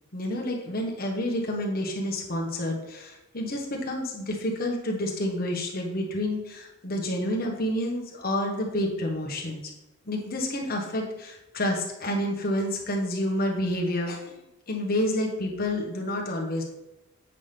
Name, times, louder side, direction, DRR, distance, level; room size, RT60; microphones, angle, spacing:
voice 1, 0.1-9.6 10.1-14.2 14.7-16.6, left 1 dB, 45° left, 0 dB, 1.3 m, -29 dB
8.2 x 5.8 x 3.4 m, 0.95 s
head